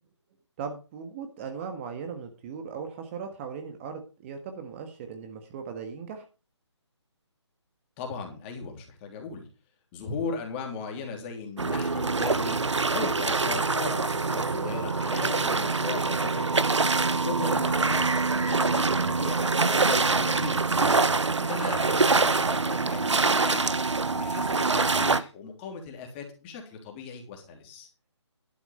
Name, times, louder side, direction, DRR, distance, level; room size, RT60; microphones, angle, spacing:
voice 1, 0.6-6.2 21.5-21.6, right 6 dB, 25° right, 6 dB, 1.5 m, -38 dB
voice 2, 8.0-9.5 9.9-12.6 12.9-16.6 17.1-20.9 21.4-23.7 24.1-27.9, left 5 dB, 25° left, 3 dB, 3.2 m, -37 dB
sound 1, 11.6-25.2, right 4 dB, 80° right, 1.1 m, -25 dB
12.0 x 7.9 x 5.4 m, 0.32 s
figure-of-eight pair, 145°, 15 cm